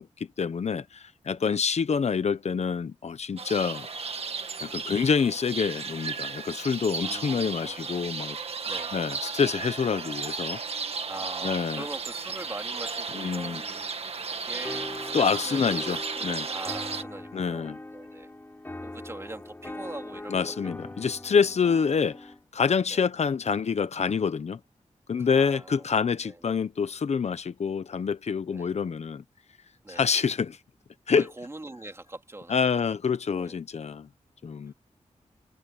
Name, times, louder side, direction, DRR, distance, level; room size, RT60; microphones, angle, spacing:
voice 1, 0.0-3.9 4.6-8.4 8.9-10.6 11.4-11.8 13.1-13.6 15.1-16.5 17.3-17.8 20.3-24.6 25.1-29.2 29.9-30.6 31.1-31.3 32.5-34.1 34.4-34.7, left 6 dB, 60° left, 0.9 m, -27 dB
sound 1, 3.4-17.0, right 5 dB, 55° right, 1.8 m, -34 dB
voice 2, 7.0-7.8 8.6-8.9 11.1-18.3 18.8-21.2 21.6-21.7 22.9-23.0 25.2-25.8 26.2-26.5 28.5-28.7 29.8-30.1 31.1-32.9 33.4-33.6, right 2 dB, 20° right, 3.2 m, -43 dB
sound 2, 14.6-22.4, left 1 dB, 15° left, 5.1 m, -41 dB
wide cardioid pair, 140°, 12 cm